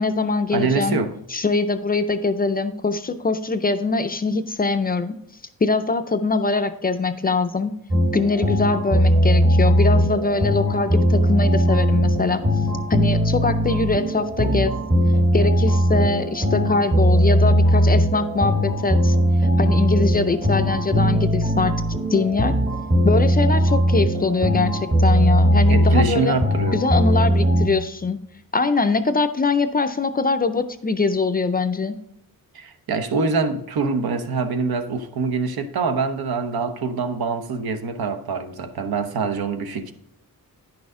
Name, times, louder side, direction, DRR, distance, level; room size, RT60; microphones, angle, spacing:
voice 1, 0.0-1.0 1.3-5.2 5.6-7.7 8.1-12.4 12.9-14.7 15.3-19.2 19.6-21.8 22.1-22.6 23.0-26.4 26.7-28.2 28.5-32.0, left 4 dB, 25° left, 0.4 m, -22 dB
voice 2, 0.5-1.1 25.7-26.8 32.5-39.9, right 4 dB, 80° right, 1.0 m, -24 dB
sound 1, 7.9-27.7, equal, 30° right, 1.1 m, -19 dB
10.0 x 6.2 x 3.6 m
wide cardioid pair, 175°, 36 cm